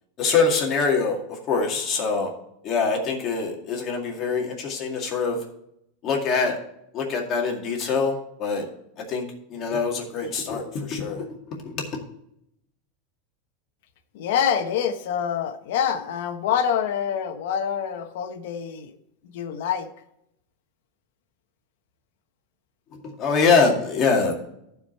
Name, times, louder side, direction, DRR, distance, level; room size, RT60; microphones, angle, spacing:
voice 1, 0.2-2.3 2.6-5.4 6.0-6.6 6.9-8.6 9.1-9.2 9.5-11.3 11.6-11.8 22.9-24.3, left 4 dB, 25° left, 0 dB, 2.1 m, -24 dB
voice 2, 14.1-18.9 19.2-19.9, left 8 dB, 60° left, 8 dB, 1.2 m, -26 dB
14.5 x 5.0 x 4.4 m, 0.78 s
supercardioid pair, 170°, 0 cm